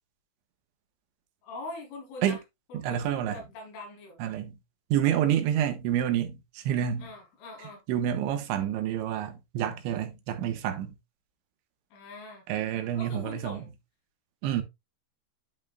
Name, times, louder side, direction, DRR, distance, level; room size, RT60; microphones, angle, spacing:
voice 1, 1.4-2.4 2.7-4.2 7.0-7.8 11.9-12.5 13.0-13.7, left 2 dB, 85° left, 5.6 m, -43 dB
voice 2, 2.7-3.4 4.2-4.6 4.9-7.1 7.9-10.9 12.5-13.6 14.4-14.6, right 10 dB, 80° right, 3.4 m, -28 dB
12.0 x 5.5 x 2.3 m
omnidirectional pair, 5.4 m